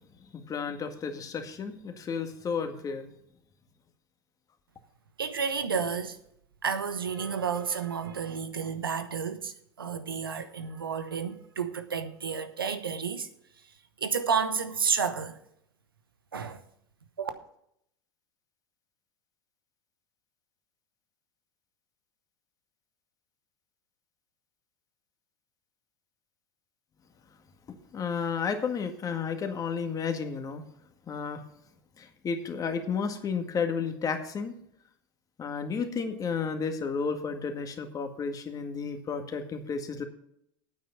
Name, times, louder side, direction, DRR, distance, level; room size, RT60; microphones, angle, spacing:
voice 1, 0.3-3.1 27.7-30.6 31.1-31.4 32.0-34.5 35.4-40.0, left 5 dB, 30° left, 1.8 m, -32 dB
voice 2, 5.2-6.2 6.6-9.5 9.8-13.3 14.0-15.4 16.3-16.6 17.2-17.3, right 6 dB, 90° right, 1.0 m, -31 dB
9.3 x 8.6 x 5.6 m
hypercardioid pair, 80°, 12 cm